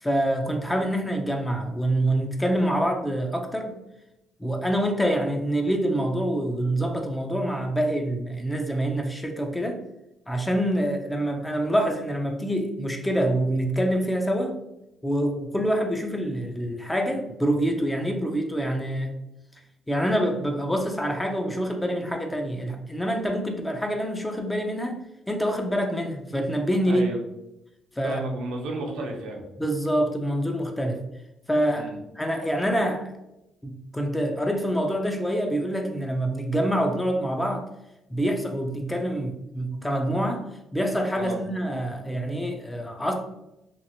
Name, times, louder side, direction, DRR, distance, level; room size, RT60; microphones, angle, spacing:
voice 1, 0.0-3.8 4.4-9.8 10.3-14.6 15.0-19.1 19.9-24.9 25.3-27.0 28.0-28.2 29.6-31.0 31.5-31.9 32.2-33.1 33.6-37.7 38.1-40.5 40.7-43.1, equal, 10° left, 3 dB, 0.5 m, -26 dB
voice 2, 26.8-27.2 28.0-29.4 31.7-32.0 41.2-41.4, right 2 dB, 85° right, 1 dB, 0.6 m, -32 dB
2.9 x 2.5 x 2.7 m, 0.90 s
cardioid pair, 90°, 0 cm